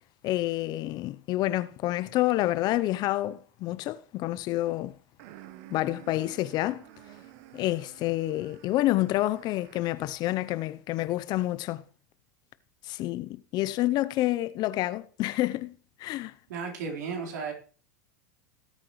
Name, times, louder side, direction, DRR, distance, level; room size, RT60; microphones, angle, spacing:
voice 1, 0.2-4.9 5.7-6.8 7.5-11.8 12.8-15.7 16.0-16.3, left 16 dB, 45° left, 0.7 m, -28 dB
sound 1, 5.2-10.1, right 14 dB, 60° right, 1.1 m, -51 dB
voice 2, 16.5-17.5, right 5 dB, 75° right, 4.3 m, -34 dB
18.0 x 8.6 x 3.2 m
hypercardioid pair, 105°, 10 cm